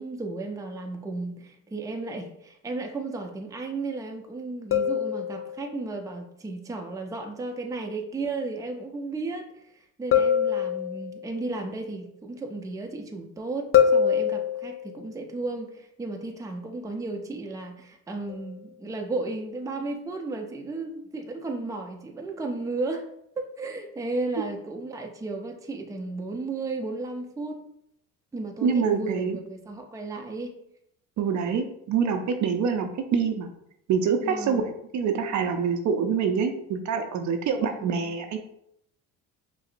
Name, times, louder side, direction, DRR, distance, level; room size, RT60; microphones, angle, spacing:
voice 1, 0.0-9.5 10.0-23.1 23.4-27.6 28.3-30.6 34.2-34.7 37.8-38.1, right 3 dB, 10° right, 3 dB, 0.5 m, -34 dB
sound 1, 4.7-5.8 10.1-11.3 13.7-15.0 18.3-18.5, left 8 dB, 35° left, 0.6 m, -24 dB
voice 2, 28.6-29.4 31.2-33.5 33.9-38.4, right 6 dB, 55° right, 6 dB, 0.5 m, -26 dB
6.0 x 2.0 x 2.5 m, 0.75 s
supercardioid pair, 75°, 36 cm